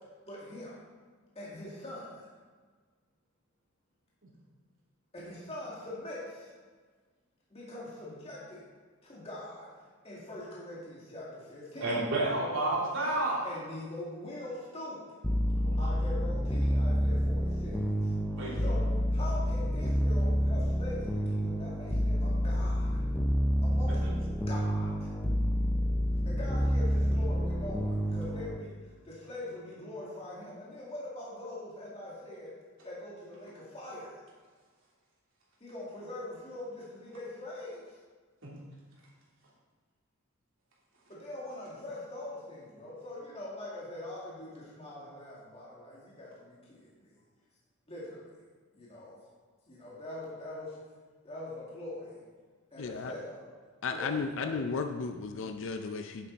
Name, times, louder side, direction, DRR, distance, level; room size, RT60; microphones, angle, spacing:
voice 1, 0.3-0.8 1.3-2.3 5.1-6.5 7.5-8.6 9.0-12.0 13.4-15.0 15.8-23.0 23.6-24.0 24.5-25.1 26.2-32.5 32.8-34.1 35.6-38.0 41.1-47.2 47.9-48.2 48.7-49.2 49.7-50.8 51.2-52.2 52.7-53.4 53.9-54.6, left 1 dB, 30° left, -7 dB, 2.3 m, -43 dB
voice 2, 11.8-13.5 15.6-15.9 18.3-18.6 38.4-38.5, right 2 dB, 65° right, -5 dB, 3.1 m, -30 dB
sound 1, 15.2-28.6, equal, 10° left, 0.5 m, -28 dB
voice 3, 52.8-53.1 53.8-56.3, left 4 dB, 65° left, 6 dB, 0.5 m, -34 dB
10.5 x 7.5 x 4.0 m, 1.5 s
head